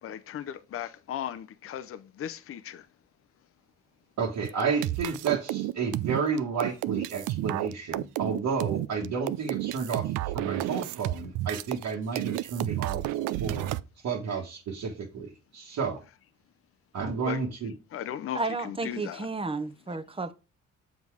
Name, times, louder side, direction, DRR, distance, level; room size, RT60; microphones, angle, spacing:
voice 1, 0.0-2.9 17.2-17.4 17.9-19.3, left 10 dB, 45° left, 0.6 m, -37 dB
voice 2, 4.2-13.0 13.4-13.7 14.0-16.0 16.9-17.7, right 5 dB, 70° right, 1.5 m, -31 dB
sound 1, 4.4-11.9 12.2-13.8, right 15 dB, 85° right, 0.5 m, -31 dB
voice 3, 18.3-20.3, right 3 dB, 20° right, 0.8 m, -32 dB
7.3 x 3.9 x 4.7 m
cardioid pair, 90°, 30 cm